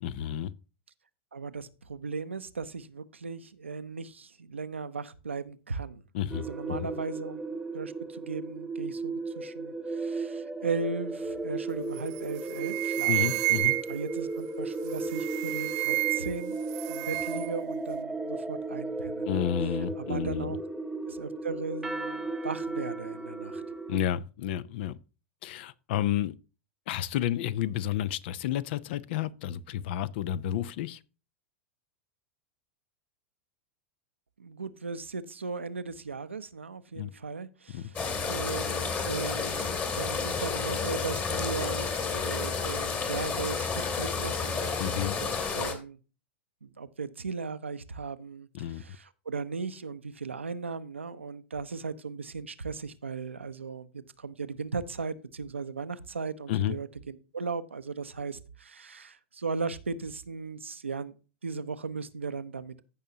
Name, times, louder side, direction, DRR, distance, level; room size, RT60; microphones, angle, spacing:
voice 1, 0.0-0.5 6.1-6.9 13.1-13.8 19.2-20.6 23.9-25.0 25.4-26.4 26.9-31.0 37.0-37.1 37.7-37.9 44.8-45.2 48.5-48.8 56.5-56.8, left 11 dB, 60° left, 0.5 m, -31 dB
voice 2, 1.3-6.0 6.4-7.4 7.7-13.4 13.9-16.6 16.9-19.5 20.0-20.6 21.1-23.6 34.4-38.0 38.3-46.0 46.6-61.1 61.4-62.8, right 4 dB, 90° right, 0.6 m, -37 dB
sound 1, 6.3-24.0, right 3 dB, 5° right, 0.7 m, -35 dB
sound 2, 12.0-12.2 12.5-14.1 15.0-16.4 16.7-17.5, right 25 dB, 50° right, 0.4 m, -29 dB
sound 3, 37.9-45.7, left 5 dB, 30° left, 2.2 m, -31 dB
15.0 x 5.6 x 2.8 m
hypercardioid pair, 95°, 6 cm